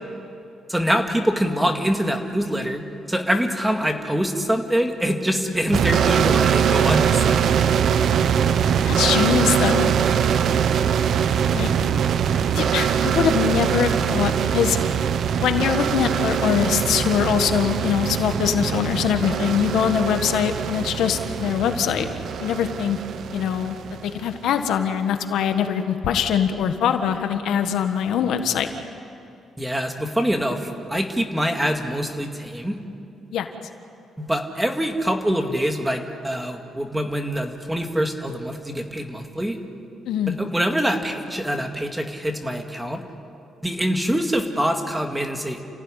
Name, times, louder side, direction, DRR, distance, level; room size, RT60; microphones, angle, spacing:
voice 1, 0.7-7.5 29.6-32.8 34.2-39.6 40.3-43.0 43.6-45.6, equal, 5° right, 4 dB, 2.0 m, -24 dB
sound 1, 5.7-24.4, right 8 dB, 65° right, 1.0 m, -22 dB
voice 2, 8.8-9.9 11.5-11.7 12.5-14.8 15.4-22.1 22.4-23.0 23.3-23.7 24.0-28.7 33.3-33.5 40.1-40.4, left 8 dB, 85° left, 7 dB, 1.6 m, -22 dB
29.5 x 16.0 x 10.0 m, 2.6 s
cardioid pair, 140°, 0 cm